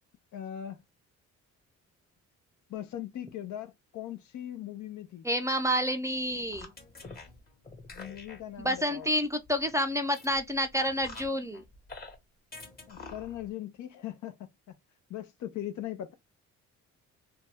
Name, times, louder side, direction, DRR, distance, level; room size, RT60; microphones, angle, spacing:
voice 1, 0.3-0.8 2.7-5.3 7.9-9.1 12.9-14.4 15.1-16.1, left 11 dB, 70° left, 0.7 m, -39 dB
voice 2, 5.2-6.7 8.6-11.6, equal, 10° right, 0.4 m, -29 dB
sound 1, 6.0-12.2 12.5-13.5, left 3 dB, 30° left, 1.1 m, -48 dB
2.6 x 2.2 x 3.3 m
cardioid pair, 90°, 30 cm